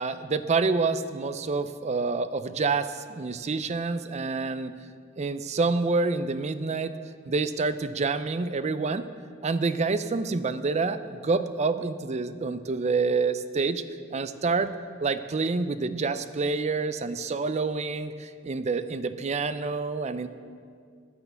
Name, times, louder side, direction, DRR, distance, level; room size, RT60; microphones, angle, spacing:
voice 1, 0.0-4.7 5.2-6.9 7.3-9.1 9.4-13.8 14.1-14.7 15.0-20.3, right 4 dB, 35° right, 11 dB, 0.5 m, -27 dB
9.7 x 9.5 x 6.9 m, 2.2 s
head